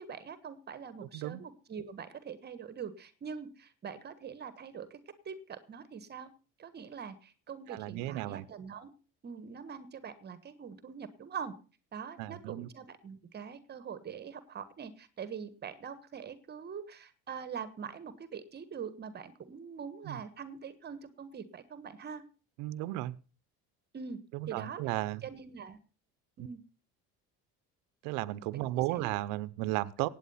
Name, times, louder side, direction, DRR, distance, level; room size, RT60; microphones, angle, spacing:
voice 1, 0.0-5.0 5.2-6.3 6.6-8.9 9.2-11.5 11.9-22.2 23.9-24.2 24.5-24.8 25.2-25.8 26.4-26.6 28.7-29.1 30.0-30.1, right 7 dB, 35° right, 1.4 m, -43 dB
voice 2, 1.0-1.4 7.7-8.4 12.2-12.7 20.0-20.2 22.6-23.2 24.3-25.2 28.0-30.1, right 17 dB, 85° right, 0.8 m, -34 dB
17.0 x 8.9 x 5.6 m
cardioid pair, 125°, 29 cm